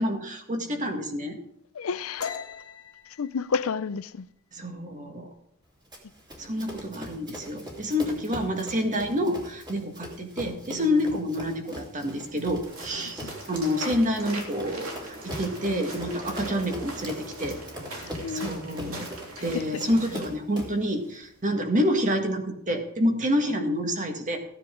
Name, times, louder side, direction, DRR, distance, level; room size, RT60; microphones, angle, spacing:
voice 1, 0.0-1.4 4.5-5.3 6.4-17.6 18.0-19.1 19.4-24.4, equal, 35° right, 1.8 m, -28 dB
voice 2, 1.7-2.3 3.2-4.3 13.2-13.3 18.2-18.5, left 5 dB, 70° left, 0.5 m, -30 dB
sound 1, 2.2-5.6 6.0-6.3 6.7-7.2 7.4-8.2, left 6 dB, 85° left, 1.4 m, -40 dB
Run, 5.9-20.9, equal, 20° right, 2.9 m, -41 dB
sound 2, 12.6-20.3, right 1 dB, 70° right, 3.1 m, -40 dB
15.5 x 9.9 x 3.8 m
head